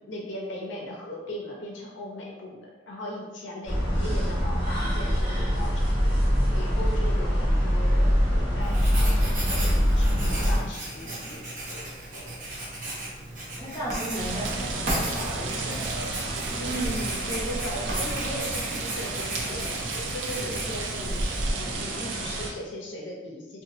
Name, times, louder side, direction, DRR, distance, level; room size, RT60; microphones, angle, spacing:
voice 1, 0.1-11.9 12.1-12.3 16.6-23.6, equal, 75° left, -2 dB, 0.7 m, -38 dB
sound 1, 3.6-10.6, equal, 15° right, 1.2 m, -23 dB
Writing, 8.6-21.5, right 1 dB, 45° right, 0.8 m, -35 dB
voice 2, 13.6-16.0, equal, 20° left, -7 dB, 0.7 m, -36 dB
sound 2, 14.1-22.5, right 2 dB, 75° right, 0.4 m, -32 dB
2.9 x 2.3 x 2.7 m, 1.1 s
head